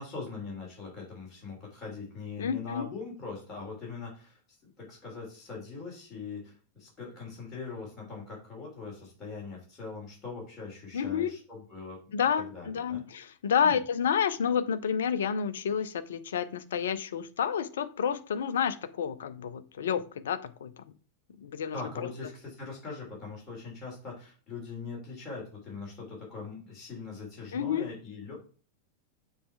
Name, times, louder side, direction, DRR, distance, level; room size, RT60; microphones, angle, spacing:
voice 1, 0.0-4.4 4.8-12.0 12.5-13.0 13.6-13.8 21.7-28.3, left 4 dB, 25° left, -3 dB, 3.2 m, -41 dB
voice 2, 2.4-2.9 10.9-11.3 12.1-20.8 21.4-22.1 27.5-27.9, left 7 dB, 60° left, 14 dB, 0.5 m, -30 dB
7.0 x 3.2 x 4.6 m, 0.38 s
figure-of-eight pair, 90°, 0 cm